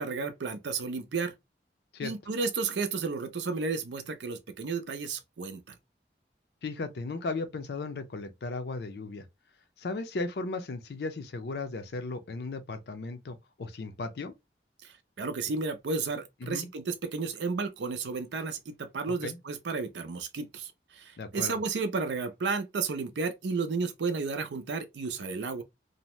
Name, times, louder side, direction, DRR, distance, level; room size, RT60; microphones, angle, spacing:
voice 1, 0.0-1.3 2.0-5.7 14.8-25.6, right 4 dB, 90° right, 0.5 m, -33 dB
voice 2, 6.6-9.3 9.8-14.3 16.4-16.7 19.1-19.4 21.2-21.6, left 3 dB, 70° left, 0.4 m, -36 dB
2.6 x 2.0 x 3.0 m
head